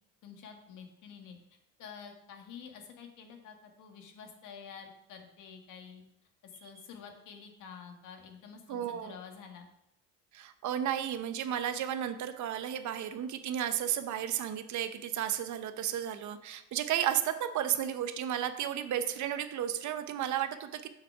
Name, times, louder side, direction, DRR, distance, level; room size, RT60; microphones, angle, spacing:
voice 1, 0.2-1.4 1.8-6.0 6.4-9.7, left 6 dB, 60° left, 4 dB, 1.8 m, -49 dB
voice 2, 8.7-9.2 10.3-20.9, right 10 dB, 55° right, 10 dB, 0.8 m, -33 dB
6.9 x 6.1 x 5.7 m, 0.84 s
supercardioid pair, 105°, 36 cm